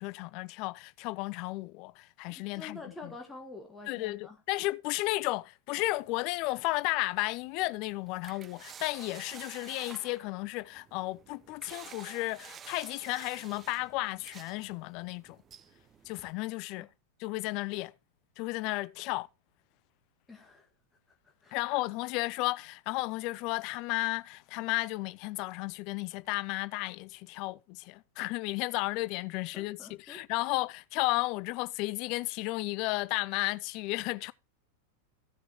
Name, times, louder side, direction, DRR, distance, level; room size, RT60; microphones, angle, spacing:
voice 1, 0.0-3.1 3.9-15.4 16.1-16.9 17.2-17.9 18.4-19.3 21.5-34.3, left 21 dB, 45° left, 0.4 m, -33 dB
voice 2, 2.5-4.4 16.8-16.9 20.3-20.7 21.2-21.6 29.5-30.2, left 3 dB, 10° left, 1.7 m, -47 dB
sound 1, 5.8-16.3, right 8 dB, 25° right, 0.5 m, -52 dB
15.5 x 6.8 x 3.0 m
figure-of-eight pair, 90°, 0 cm